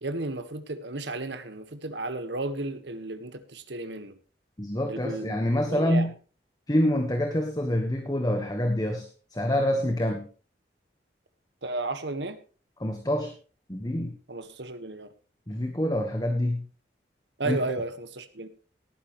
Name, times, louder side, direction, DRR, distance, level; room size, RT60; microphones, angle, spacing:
voice 1, 0.0-4.2 4.9-6.1 11.6-12.4 14.3-15.1 17.4-18.5, right 2 dB, 80° right, 10 dB, 1.6 m, -33 dB
voice 2, 4.6-6.1 6.7-9.1 9.3-10.2 12.8-13.3 13.7-14.1 15.5-16.6 17.4-17.6, left 1 dB, 20° left, 5 dB, 1.4 m, -26 dB
18.0 x 9.7 x 3.2 m, 0.36 s
head